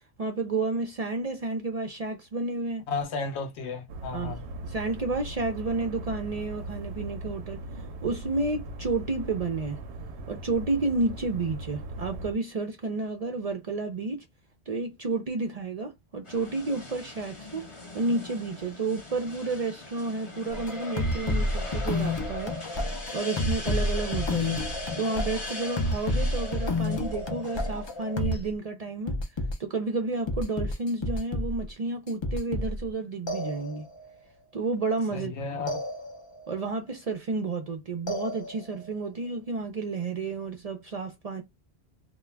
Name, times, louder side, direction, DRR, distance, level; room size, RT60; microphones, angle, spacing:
voice 1, 0.2-2.8 4.1-4.3 4.6-9.8 10.3-14.3 14.7-17.7 17.9-22.6 23.1-24.7 25.0-29.2 29.6-33.9 34.5-35.3 35.6-35.7 36.5-41.4, right 3 dB, 50° right, 0.5 m, -31 dB
voice 2, 2.9-4.4 35.1-35.8, left 4 dB, 80° left, 0.9 m, -33 dB
sound 1, 3.9-12.3, right 2 dB, 85° right, 0.9 m, -39 dB
sound 2, 16.2-28.2, left 2 dB, 30° left, 0.8 m, -42 dB
sound 3, 20.5-28.5 29.1-29.5 30.3-31.7 32.1-32.9 33.3-34.1 35.7-36.5 38.1-38.9, left 1 dB, 45° left, 0.3 m, -30 dB
2.4 x 2.2 x 3.2 m
omnidirectional pair, 1.1 m